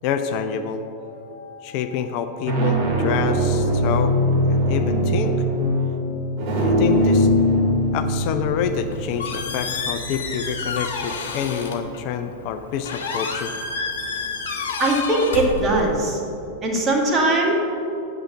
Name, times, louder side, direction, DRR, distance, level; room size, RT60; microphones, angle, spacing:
voice 1, 0.0-0.8 1.6-4.1 4.5-5.4 6.6-7.3 7.9-13.5, left 7 dB, 45° left, 8 dB, 0.5 m, -27 dB
sound 1, 1.0-1.4 2.2-10.8, equal, 45° right, 2.2 m, -22 dB
Squeak, 8.7-16.2, left 4 dB, 60° left, 1.1 m, -30 dB
voice 2, 14.8-16.2 16.6-17.5, right 2 dB, 25° right, -1 dB, 1.9 m, -20 dB
8.8 x 6.4 x 6.9 m, 2.8 s
figure-of-eight pair, 90°, 0 cm